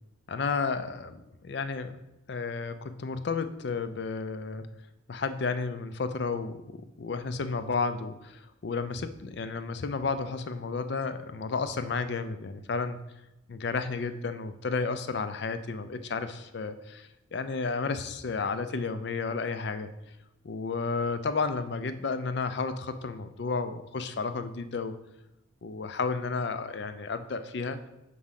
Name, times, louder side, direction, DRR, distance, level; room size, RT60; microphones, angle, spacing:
voice 1, 0.3-2.0 2.3-4.7 5.1-13.0 13.5-19.9 20.4-24.9 25.6-27.8, left 4 dB, 60° left, 11 dB, 0.4 m, -32 dB
5.0 x 4.6 x 5.6 m, 0.92 s
head